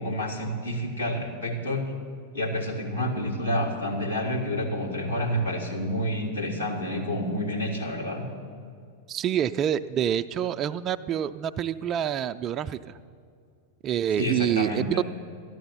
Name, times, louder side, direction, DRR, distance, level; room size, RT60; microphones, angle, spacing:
voice 1, 0.0-1.9 2.3-8.2 14.2-15.0, equal, 85° left, -3 dB, 2.3 m, -29 dB
voice 2, 9.1-13.0 13.8-15.0, right 10 dB, 30° right, 11 dB, 0.3 m, -27 dB
13.0 x 10.5 x 6.8 m, 2.4 s
figure-of-eight pair, 90°, 0 cm